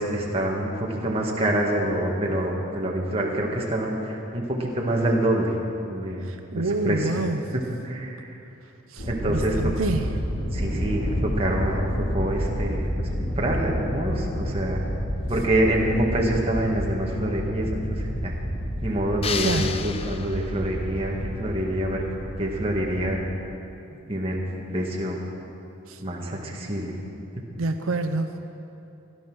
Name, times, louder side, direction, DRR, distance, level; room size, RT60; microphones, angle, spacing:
voice 1, 0.0-5.5 5.9-7.1 7.5-8.4 9.0-9.6 10.5-11.8 12.1-14.8 15.3-18.3 18.8-22.0 22.4-23.2 24.1-24.4 24.7-25.2 26.0-26.9, right 1 dB, 25° right, -2 dB, 1.8 m, -26 dB
voice 2, 6.2-7.4 8.9-10.1 19.4-19.8 25.9-26.0 27.6-28.4, right 2 dB, 80° right, 7 dB, 0.6 m, -28 dB
Thunder, 9.0-23.2, equal, 80° left, 4.5 m, -30 dB
sound 1, 19.2-20.8, left 6 dB, 25° left, 0.4 m, -31 dB
16.0 x 11.5 x 6.3 m, 2.8 s
head